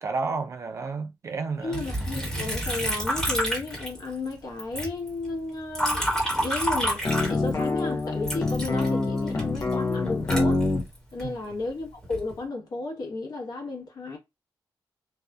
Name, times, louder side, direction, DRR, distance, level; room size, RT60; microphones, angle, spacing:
voice 1, 0.0-1.8 11.2-11.6, right 4 dB, 40° right, 0.4 m, -31 dB
voice 2, 1.6-10.6 11.1-14.2, left 3 dB, 55° left, 1.0 m, -33 dB
Liquid, 1.7-4.3 4.6-7.8 8.2-11.3 11.8-12.4, equal, 10° left, 1.1 m, -29 dB
sound 1, 7.0-10.9, left 3 dB, 35° left, 0.6 m, -26 dB
2.6 x 2.2 x 2.3 m
wide cardioid pair, 145°, 8 cm